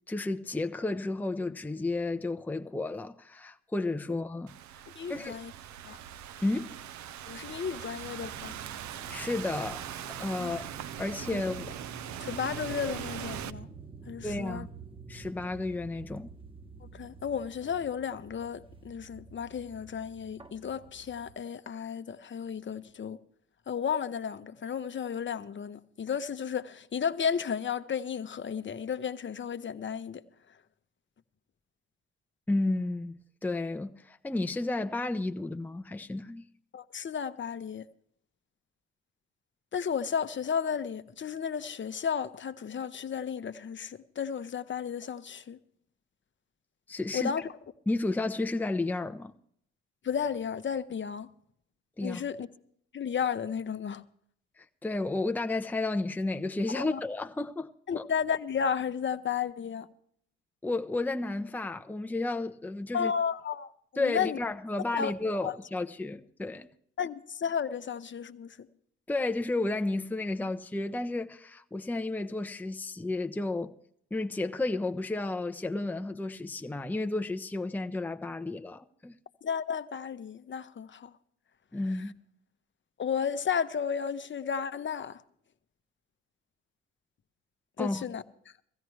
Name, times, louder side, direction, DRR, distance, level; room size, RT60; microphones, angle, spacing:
voice 1, 0.1-4.5 5.1-5.4 6.4-6.7 9.1-9.8 10.1-10.7 11.0-11.8 14.2-14.7 15.1-16.3 32.5-36.5 46.9-47.3 47.9-49.3 52.0-52.2 54.6-58.0 60.6-63.1 64.0-66.7 69.1-73.7 74.1-79.1 81.7-82.1 87.8-88.0, left 2 dB, 5° left, 0.7 m, -32 dB
Thunderstorm / Rain, 4.5-13.5, right 10 dB, 60° right, 0.7 m, -41 dB
voice 2, 4.9-5.5 5.8-6.0 7.3-8.5 10.4-10.5 11.3-11.4 12.2-13.7 14.1-14.7 16.8-23.2 23.7-30.2 36.7-37.9 39.7-45.6 47.1-47.5 50.0-51.3 52.0-52.5 52.9-54.0 56.7-57.0 57.9-59.9 62.9-64.4 65.0-65.1 65.4-65.5 67.0-68.7 79.4-81.1 83.0-85.2 87.8-88.2, left 7 dB, 35° left, 0.9 m, -33 dB
sound 1, 8.0-21.3, right 4 dB, 15° right, 1.2 m, -48 dB
17.5 x 15.5 x 3.2 m
hypercardioid pair, 50°, 32 cm